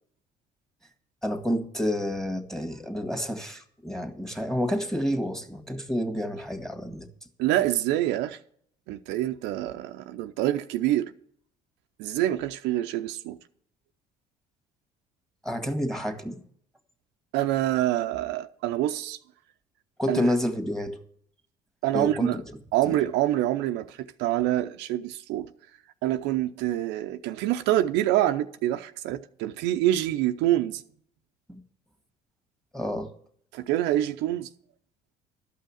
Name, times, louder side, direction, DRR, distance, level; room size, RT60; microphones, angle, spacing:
voice 1, 1.2-7.1 15.4-16.4 20.0-21.0 21.9-22.4 22.9-23.0 31.5-31.6 32.7-33.1, equal, ahead, 1.9 m, -29 dB
voice 2, 7.4-8.4 8.9-11.1 12.0-13.4 17.3-19.2 20.1-20.3 21.8-22.4 22.7-25.5 26.0-30.8 33.5-34.5, right 14 dB, 75° right, 0.6 m, -26 dB
12.5 x 5.6 x 8.8 m
supercardioid pair, 70°, 18 cm